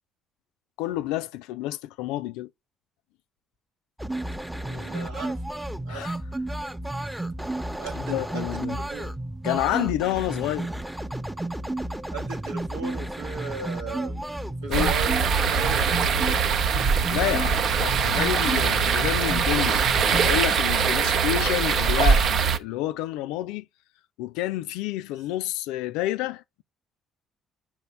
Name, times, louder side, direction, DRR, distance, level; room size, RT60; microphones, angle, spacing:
voice 1, 0.8-2.5 5.9-6.1 8.0-8.8 9.4-10.7 14.7-14.9 17.1-23.6 24.2-26.6, left 14 dB, 80° left, 0.4 m, -29 dB
sound 1, 4.0-20.4, right 1 dB, 10° right, 0.8 m, -32 dB
voice 2, 4.6-5.4 5.8-6.1 7.8-9.1 12.1-14.2 14.6-16.4, right 5 dB, 90° right, 1.3 m, -37 dB
sound 2, 14.7-22.6, right 6 dB, 60° right, 0.7 m, -22 dB
6.0 x 4.4 x 5.6 m
hypercardioid pair, 55°, 0 cm